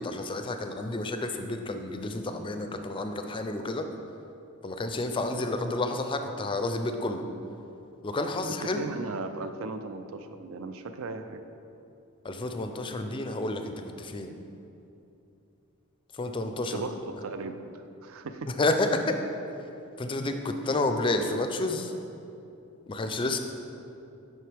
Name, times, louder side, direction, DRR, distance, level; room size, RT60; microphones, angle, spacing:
voice 1, 0.0-3.8 4.6-7.2 8.0-8.8 12.2-14.3 16.1-16.8 18.6-19.1 20.0-21.9 22.9-23.4, left 2 dB, 25° left, 6 dB, 0.4 m, -30 dB
voice 2, 8.6-11.4 16.7-18.5, right 3 dB, 70° right, 9 dB, 0.4 m, -37 dB
7.6 x 5.6 x 3.4 m, 2.8 s
head